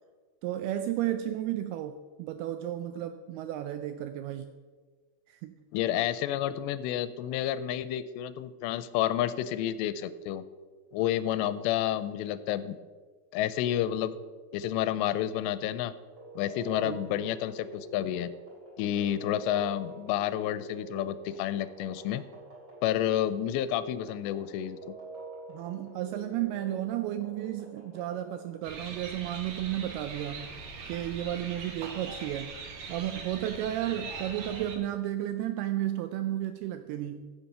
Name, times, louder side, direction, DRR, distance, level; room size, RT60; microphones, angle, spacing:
voice 1, 0.4-4.6 5.3-5.6 16.8-17.1 25.5-30.6 30.9-32.6 32.9-37.3, right 12 dB, 85° right, 9 dB, 2.3 m, -33 dB
voice 2, 5.7-10.4 10.9-12.8 13.3-14.2 14.5-15.9 16.4-18.3 18.8-22.2 22.8-24.8, left 11 dB, 85° left, 14 dB, 2.8 m, -30 dB
sound 1, 16.1-28.7, right 2 dB, 30° right, 2.8 m, -46 dB
sound 2, 28.6-34.8, right 4 dB, 60° right, 1.8 m, -41 dB
15.0 x 7.2 x 5.5 m, 1.5 s
omnidirectional pair, 5.0 m